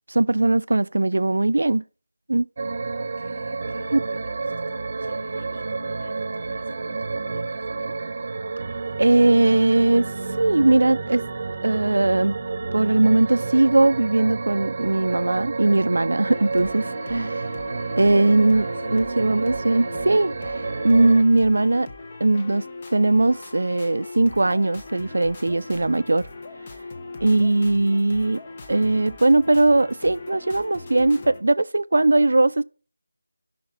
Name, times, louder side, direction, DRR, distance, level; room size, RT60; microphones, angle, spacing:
voice 1, 0.1-1.8 2.3-2.5 3.9-4.0 9.0-10.1 10.4-11.2 11.6-12.4 12.7-17.4 18.0-18.7 18.9-21.9 22.2-22.7 22.9-26.3 27.2-28.4 28.7-32.6, right 2 dB, 70° right, 0.5 m, -19 dB
sound 1, 2.6-21.2, right 3 dB, 40° right, 0.9 m, -30 dB
voice 2, 2.9-8.0 17.9-19.1, left 1 dB, 70° left, 4.0 m, -44 dB
sound 2, 16.3-31.4, left 3 dB, 25° left, 1.0 m, -40 dB
7.3 x 5.9 x 6.6 m
figure-of-eight pair, 170°, 0 cm